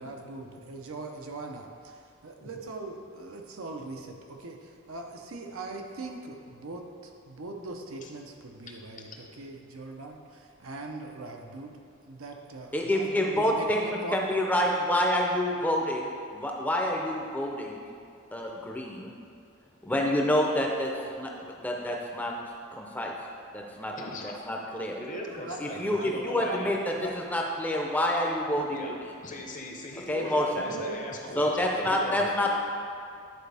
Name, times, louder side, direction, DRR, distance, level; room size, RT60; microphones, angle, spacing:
voice 1, 0.0-11.8 12.1-14.3 25.1-26.6 26.9-27.1 30.1-31.5, right 2 dB, 75° right, 2 dB, 0.7 m, -41 dB
voice 2, 12.7-13.8 14.1-17.8 18.3-19.1 19.9-20.9 21.2-22.3 22.7-23.1 23.5-23.9 24.5-25.0 25.6-26.8 27.3-28.6 30.1-30.6 31.4-32.6, left 1 dB, 10° left, -1 dB, 0.6 m, -27 dB
voice 3, 23.9-24.4 24.9-26.7 28.6-28.9 29.2-32.6, left 2 dB, 40° left, 0 dB, 0.8 m, -39 dB
10.5 x 4.4 x 3.4 m, 2.4 s
head